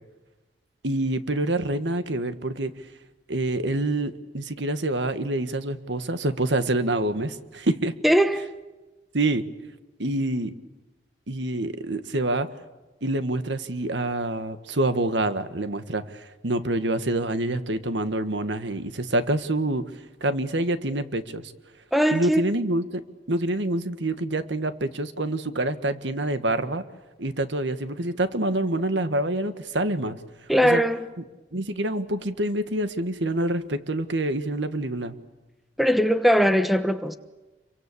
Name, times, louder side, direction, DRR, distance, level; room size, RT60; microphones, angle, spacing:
voice 1, 0.8-2.7 3.3-7.9 9.1-9.4 10.0-10.5 11.3-12.5 13.0-19.8 20.2-21.5 22.1-23.0 23.3-26.8 27.2-30.2 30.6-30.8 31.5-35.1, right 1 dB, 85° right, 1.7 m, -26 dB
voice 2, 8.0-8.5 21.9-22.5 30.5-31.1 35.8-37.2, equal, ahead, 1.1 m, -20 dB
28.5 x 23.5 x 8.5 m
head